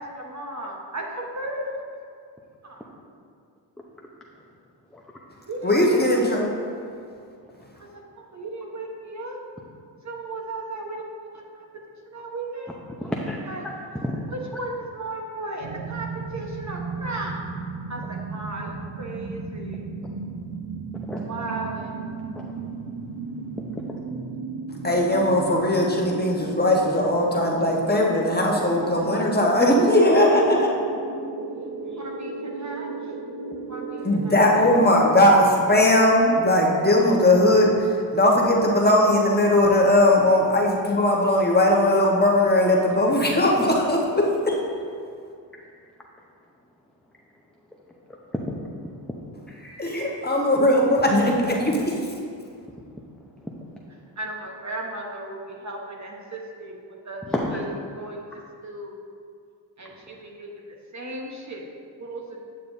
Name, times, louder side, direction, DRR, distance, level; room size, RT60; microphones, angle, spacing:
voice 1, 0.0-1.8 2.6-2.9 5.5-6.0 7.8-9.4 10.0-11.0 11.3-11.7 12.1-12.8 13.5-13.7 14.3-17.4 17.9-19.9 21.3-22.0 32.0-33.1 33.7-34.4 54.2-57.3 57.5-58.2 58.6-59.0 59.8-61.6 62.0-62.4, right 2 dB, 35° right, 0 dB, 1.2 m, -35 dB
voice 2, 5.6-6.5 24.8-30.7 34.0-37.7 38.1-44.6 49.8-51.9, left 1 dB, 20° left, -2 dB, 1.3 m, -19 dB
voice 3, 13.0-14.2 21.1-21.2 22.3-22.5 31.9-32.0 48.3-48.4 49.5-50.1 53.4-53.5 57.3-57.6, left 1 dB, ahead, -2 dB, 0.7 m, -31 dB
sound 1, 15.6-35.4, right 4 dB, 80° right, 0.9 m, -34 dB
9.0 x 6.6 x 2.7 m, 2.3 s
cardioid pair, 55°, 48 cm